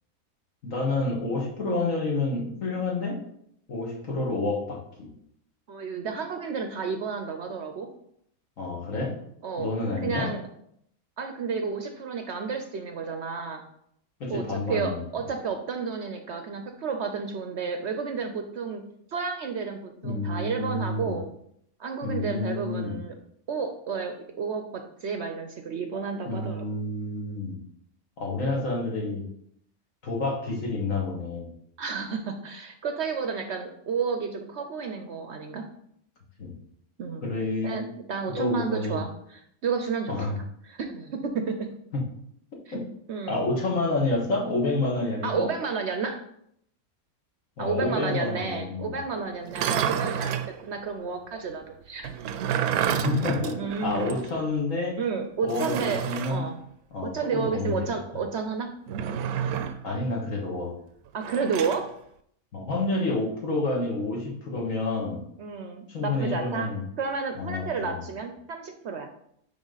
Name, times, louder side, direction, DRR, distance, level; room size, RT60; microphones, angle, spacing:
voice 1, 0.6-3.2 3.7-5.1 8.6-9.1 9.6-10.3 14.2-15.0 20.0-21.2 22.0-23.0 26.3-27.6 28.2-29.2 30.0-31.5 36.4-36.5 37.2-37.8 38.3-39.0 40.1-40.3 42.7-42.8 43.3-45.5 47.6-49.0 53.0-53.5 53.8-54.9 55.4-56.4 56.9-57.7 59.8-60.7 62.5-65.2 65.9-66.8 67.4-68.0, left 2 dB, 65° left, -1 dB, 2.1 m, -29 dB
voice 2, 5.7-7.9 9.4-9.7 10.0-10.4 11.2-13.6 14.3-18.8 19.1-21.3 21.8-23.1 23.5-26.7 31.8-35.7 37.0-37.3 37.6-40.1 40.6-41.7 42.7-42.8 43.1-43.5 45.2-46.2 47.6-52.5 53.5-54.1 55.0-56.0 56.3-56.6 57.0-59.5 61.1-61.9 65.4-66.7 67.0-69.1, right 5 dB, 60° right, 5 dB, 0.8 m, -31 dB
sound 1, 49.4-50.5 52.0-54.3 54.6-54.7 55.5-56.4 58.9-59.9 61.2-61.8, right 9 dB, 85° right, 1.1 m, -29 dB
10.0 x 3.6 x 3.9 m, 0.71 s
omnidirectional pair, 1.5 m